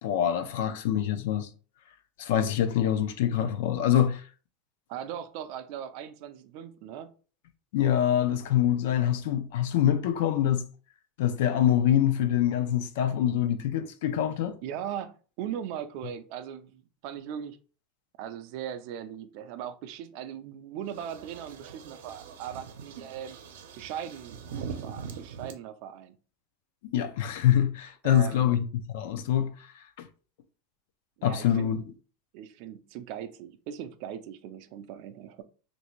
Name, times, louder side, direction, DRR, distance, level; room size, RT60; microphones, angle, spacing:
voice 1, 0.0-1.5 2.2-4.2 7.7-10.6 11.2-14.6 26.9-28.7 28.9-29.5 30.0-30.1 31.2-31.8, left 10 dB, 70° left, 0.4 m, -25 dB
voice 2, 4.9-7.1 14.6-17.6 18.2-23.4 23.8-26.2 28.0-28.6 31.2-31.7 32.3-35.4, right 9 dB, 50° right, 0.4 m, -39 dB
sound 1, 20.9-25.5, right 6 dB, 90° right, 0.6 m, -42 dB
3.2 x 2.6 x 3.0 m
supercardioid pair, 155°, 0 cm